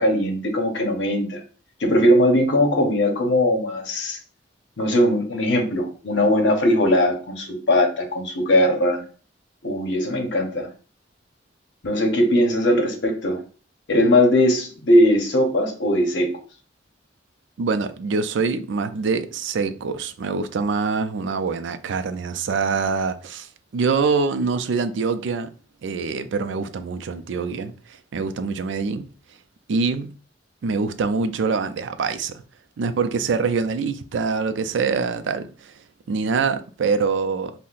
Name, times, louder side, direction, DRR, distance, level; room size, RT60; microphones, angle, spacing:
voice 1, 0.0-1.4 1.8-4.2 4.8-9.0 9.6-10.7 11.8-13.4 13.9-16.3, left 1 dB, 70° left, 0.8 m, -19 dB
voice 2, 17.6-25.5 25.8-29.1 29.7-30.1 30.6-32.4 32.8-35.7 36.1-37.5, right 4 dB, 75° right, 0.4 m, -24 dB
5.5 x 2.1 x 2.4 m
head